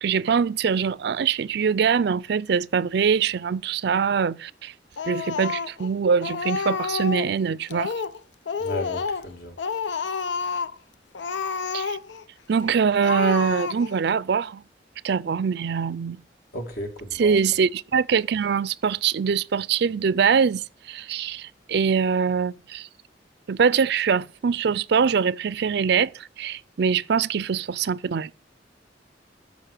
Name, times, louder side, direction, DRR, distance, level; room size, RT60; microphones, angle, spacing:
voice 1, 0.0-4.7 5.1-7.9 11.7-12.0 12.5-14.6 15.0-16.2 17.1-22.9 23.5-28.3, right 6 dB, 65° right, 0.4 m, -23 dB
Speech, 5.0-5.9 6.2-7.3 7.7-8.2 8.4-9.3 9.6-10.8 11.1-12.2 12.6-12.7 13.0-14.0, left 5 dB, 85° left, 0.6 m, -29 dB
voice 2, 8.6-9.6 16.5-17.4, left 1 dB, 60° left, 2.3 m, -34 dB
13.5 x 5.3 x 6.5 m
head